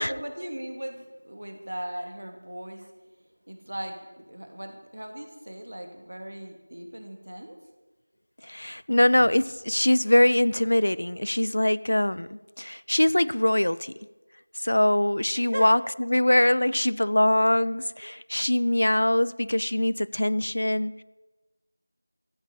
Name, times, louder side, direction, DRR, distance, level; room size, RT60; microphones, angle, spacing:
voice 1, 0.0-2.8 3.5-7.6 15.3-15.7, right 1 dB, 60° right, 5 dB, 2.8 m, -38 dB
voice 2, 8.4-13.9 14.6-21.0, left 1 dB, 55° left, 19 dB, 0.4 m, -23 dB
15.0 x 8.9 x 9.0 m, 1.2 s
figure-of-eight pair, 175°, 0 cm